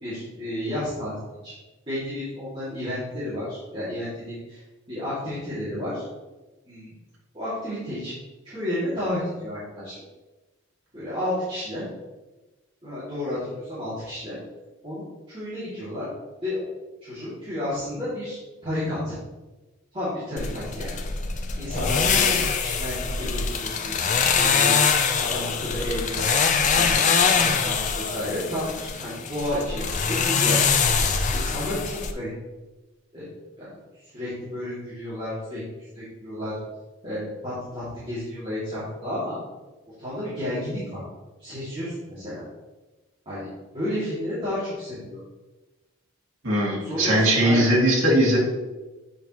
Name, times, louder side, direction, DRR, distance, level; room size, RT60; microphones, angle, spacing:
voice 1, 0.0-1.1 1.4-1.5 1.9-4.6 4.9-6.0 6.7-6.9 7.3-8.1 8.4-9.9 10.9-11.8 12.8-14.3 14.8-16.1 16.4-16.7 17.0-18.4 18.6-19.1 19.9-20.9 21.6-22.3 22.6-24.8 25.2-26.3 26.7-27.0 27.3-30.6 31.3-32.3 33.1-33.3 33.6-33.8 34.1-35.6 35.9-36.6 37.0-39.4 40.0-41.0 41.4-42.4 43.3-43.5 43.7-45.2 46.8-47.7, left 1 dB, 25° right, -12 dB, 2.4 m, -31 dB
sound 1, 20.4-32.1, left 5 dB, 35° left, 0.5 m, -23 dB
voice 2, 46.4-48.4, right 1 dB, 75° right, -3 dB, 2.2 m, -20 dB
8.5 x 5.4 x 3.0 m, 1.1 s
head